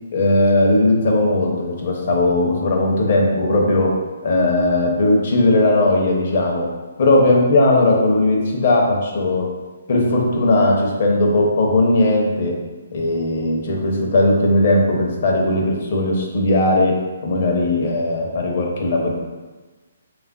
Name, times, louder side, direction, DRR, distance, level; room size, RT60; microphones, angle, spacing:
voice 1, 0.1-3.9 4.2-6.7 7.0-9.5 9.9-12.6 12.9-19.1, left 2 dB, 50° left, -1 dB, 0.6 m, -18 dB
3.3 x 2.4 x 2.2 m, 1.3 s
figure-of-eight pair, 135°, 0 cm